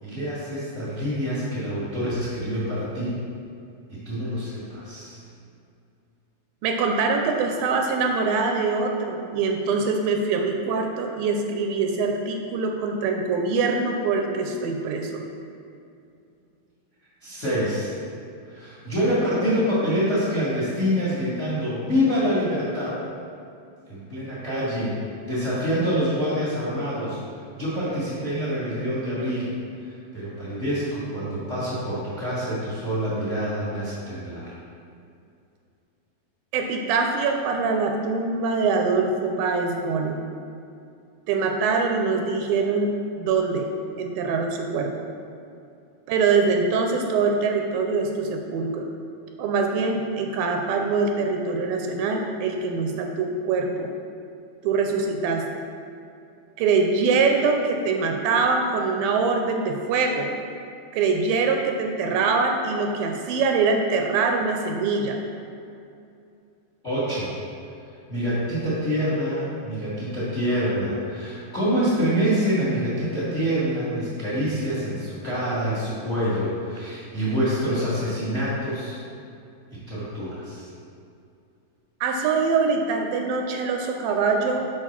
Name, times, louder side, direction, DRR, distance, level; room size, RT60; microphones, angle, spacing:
voice 1, 0.0-3.2 4.0-5.2 17.2-17.9 18.5-22.9 23.9-24.9 25.3-27.2 27.5-29.5 29.8-34.5 66.8-67.3 68.1-79.0 79.9-80.7, equal, 50° left, -9 dB, 0.8 m, -26 dB
voice 2, 6.6-15.2 36.5-40.2 41.3-42.9 43.2-43.7 44.0-45.1 46.1-48.9 49.4-53.9 54.6-55.6 56.6-60.3 60.9-65.2 82.0-84.6, right 4 dB, 80° right, 3 dB, 2.2 m, -23 dB
6.5 x 4.6 x 5.8 m, 2.5 s
omnidirectional pair, 4.3 m